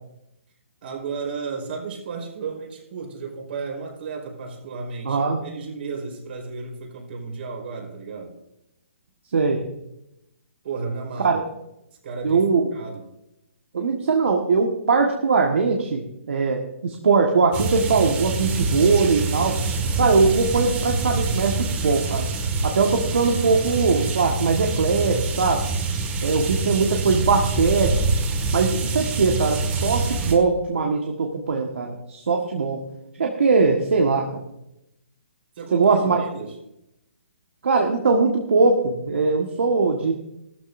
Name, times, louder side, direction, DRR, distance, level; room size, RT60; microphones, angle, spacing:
voice 1, 0.8-8.4 10.6-11.4 12.0-12.5 12.7-13.1 35.6-36.5, right 4 dB, 55° right, 1 dB, 4.5 m, -33 dB
voice 2, 5.1-5.4 9.3-9.6 11.2-11.4 12.2-12.7 13.7-19.6 20.0-22.3 22.6-25.7 26.2-28.1 28.5-32.8 33.2-34.3 35.7-36.2 37.6-40.1, right 4 dB, 70° right, 1 dB, 1.7 m, -21 dB
sound 1, 17.5-30.4, right 3 dB, 25° right, 2.0 m, -25 dB
15.5 x 13.5 x 2.7 m, 0.84 s
hypercardioid pair, 140°, 7 cm